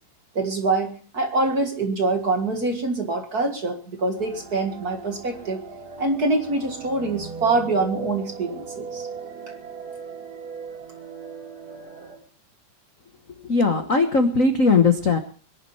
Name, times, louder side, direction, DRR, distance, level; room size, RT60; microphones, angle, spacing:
voice 1, 0.4-5.6 6.0-9.1, right 3 dB, 35° right, 5 dB, 1.8 m, -25 dB
sound 1, 4.2-12.2, right 5 dB, 80° right, 5.0 m, -38 dB
voice 2, 13.4-15.2, left 4 dB, 60° left, 6 dB, 0.8 m, -19 dB
22.5 x 11.0 x 5.6 m, 0.42 s
omnidirectional pair, 3.6 m